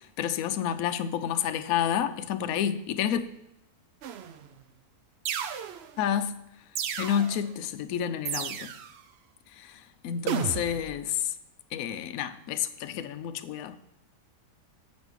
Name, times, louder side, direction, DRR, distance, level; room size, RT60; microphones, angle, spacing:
voice 1, 0.2-3.2 6.0-6.3 7.0-8.7 9.5-11.3 11.7-13.8, left 9 dB, 70° left, 1.0 m, -29 dB
sound 1, 4.0-4.5 5.3-6.0 6.8-7.5 8.3-9.0 10.3-11.0, right 8 dB, 70° right, 0.6 m, -33 dB
7.2 x 5.2 x 6.3 m
omnidirectional pair, 1.6 m